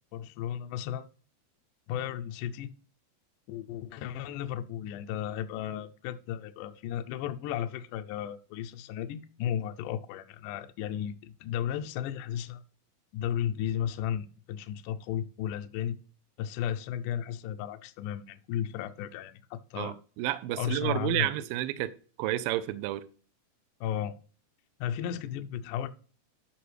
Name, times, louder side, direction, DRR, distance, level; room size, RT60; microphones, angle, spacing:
voice 1, 0.1-1.1 1.9-2.7 3.5-12.6 13.1-16.0 16.4-20.0 20.5-21.3 23.8-24.1 24.8-25.9, left 10 dB, 90° left, 1.9 m, -34 dB
voice 2, 19.8-21.9 22.2-23.1, right 14 dB, 80° right, 2.2 m, -30 dB
12.5 x 5.3 x 3.3 m
omnidirectional pair, 4.3 m